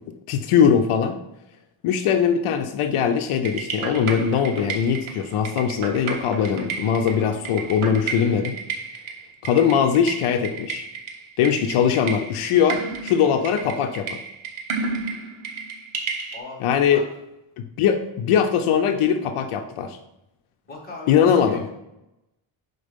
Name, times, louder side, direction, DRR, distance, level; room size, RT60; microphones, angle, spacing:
voice 1, 0.3-1.2 1.8-8.5 9.4-10.9 11.4-14.2 16.6-17.0 17.8-20.0 21.1-21.6, left 7 dB, 80° left, 7 dB, 0.6 m, -21 dB
sound 1, 3.4-16.4, right 5 dB, 70° right, 1.1 m, -32 dB
voice 2, 16.3-16.6 16.9-17.0 20.7-21.7, left 2 dB, 20° left, -3 dB, 1.7 m, -39 dB
5.3 x 4.0 x 5.1 m, 0.92 s
wide cardioid pair, 175°, 50 cm